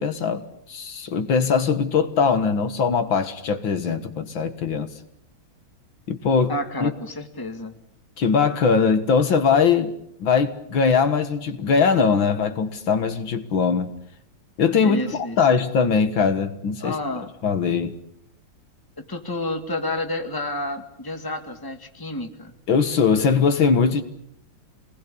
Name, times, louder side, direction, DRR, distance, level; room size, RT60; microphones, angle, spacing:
voice 1, 0.0-4.9 6.1-6.5 6.8-6.9 8.2-9.9 10.2-13.9 14.6-15.0 15.4-16.9 17.4-17.9 22.7-24.0, left 5 dB, 70° left, 2.3 m, -21 dB
voice 2, 6.5-7.8 14.8-15.6 16.8-17.4 19.0-22.6, left 2 dB, 10° left, 2.0 m, -30 dB
27.0 x 20.0 x 8.6 m
omnidirectional pair, 2.2 m